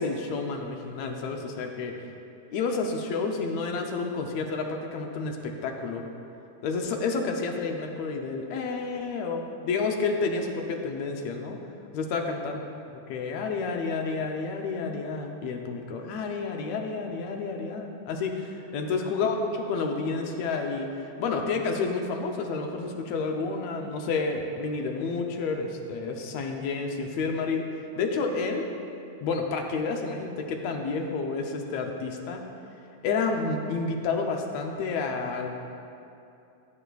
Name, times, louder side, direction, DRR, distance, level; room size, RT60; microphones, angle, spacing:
voice 1, 0.0-2.1 2.5-6.1 6.6-11.6 11.9-12.6 13.1-19.4 19.7-28.7 29.2-32.4 33.0-35.5, left 4 dB, 75° left, 3 dB, 1.8 m, -30 dB
15.0 x 8.4 x 2.3 m, 2.7 s
omnidirectional pair, 3.3 m